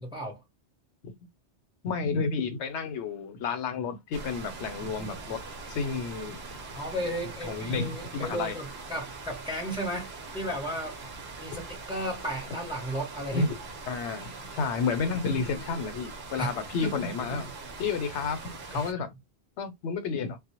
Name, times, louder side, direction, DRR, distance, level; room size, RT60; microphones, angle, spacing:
voice 1, 0.0-0.4 6.7-11.0 11.4-13.5 16.4-16.5 16.8-17.0 18.7-18.9, right 1 dB, 5° right, 0.7 m, -34 dB
voice 2, 1.8-5.4 5.7-6.4 7.4-8.6 11.5-11.6 13.3-13.6 13.9-17.5 17.8-19.1 19.6-20.4, left 5 dB, 90° left, 0.9 m, -31 dB
sound 1, 4.1-18.9, right 3 dB, 70° right, 0.9 m, -42 dB
2.1 x 2.0 x 2.8 m
omnidirectional pair, 1.2 m